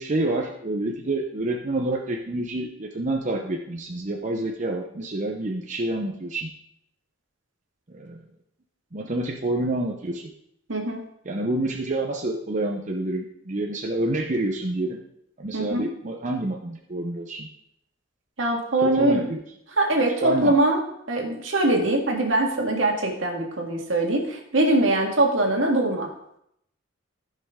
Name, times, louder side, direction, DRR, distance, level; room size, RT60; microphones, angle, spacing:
voice 1, 0.0-6.5 7.9-8.2 8.9-10.3 11.2-15.0 15.4-17.5 18.8-19.4 20.2-20.5, right 2 dB, 40° right, 1 dB, 0.8 m, -28 dB
voice 2, 10.7-11.0 15.5-15.9 18.4-19.2 19.8-20.8 21.1-26.1, right 2 dB, 75° right, 1 dB, 1.9 m, -22 dB
14.5 x 5.6 x 3.7 m, 0.76 s
head